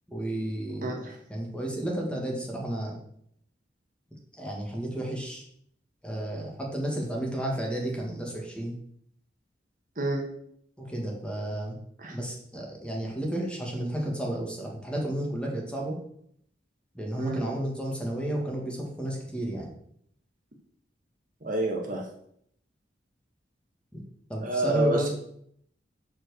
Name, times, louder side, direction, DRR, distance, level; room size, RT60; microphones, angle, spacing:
voice 1, 0.1-1.0 1.3-3.0 4.4-5.4 6.0-8.7 10.8-11.8 12.1-16.0 16.9-19.7 23.9-24.0 24.3-25.1, right 1 dB, 5° left, -1 dB, 1.8 m, -32 dB
voice 2, 0.8-1.1 10.0-10.2 12.0-12.1 17.2-17.4 21.4-22.0 24.4-25.1, right 2 dB, 50° right, 1 dB, 1.4 m, -28 dB
7.6 x 4.6 x 6.4 m, 0.69 s
head